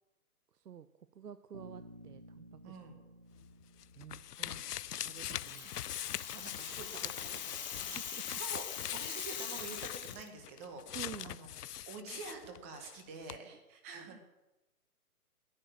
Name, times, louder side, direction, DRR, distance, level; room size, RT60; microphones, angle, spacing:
voice 1, 0.5-0.9 1.1-2.8 4.0-4.2 5.0-5.8 7.9-8.2 10.9-11.4 14.1-14.2, right 8 dB, 90° right, 12 dB, 0.9 m, -49 dB
Bass guitar, 1.5-5.6, equal, 30° right, 0.4 m, -56 dB
voice 2, 2.6-3.0 4.4-4.6 5.5-5.7 6.3-7.1 7.4-10.8 11.2-11.5 11.9-14.2, right 4 dB, 10° right, 5 dB, 0.8 m, -47 dB
sound 1, 3.4-13.0 13.3-13.4, left 11 dB, 85° left, 0.6 m, -42 dB
Rattle (instrument), 5.0-10.3, left 9 dB, 30° left, 1.0 m, -43 dB
11.0 x 9.5 x 9.0 m, 1.0 s
hypercardioid pair, 160°, 46 cm